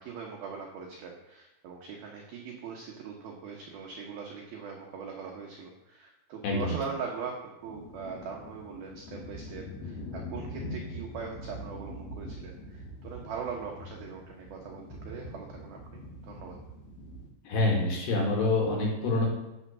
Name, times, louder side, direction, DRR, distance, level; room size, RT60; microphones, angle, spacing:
voice 1, 0.0-16.5, right 6 dB, 75° right, 0 dB, 2.2 m, -41 dB
voice 2, 6.4-6.8 17.5-19.3, left 2 dB, 60° left, -1 dB, 3.9 m, -26 dB
sound 1, 7.6-17.3, left 1 dB, 75° left, 1.4 m, -43 dB
9.4 x 6.5 x 7.2 m, 0.95 s
omnidirectional pair, 6.0 m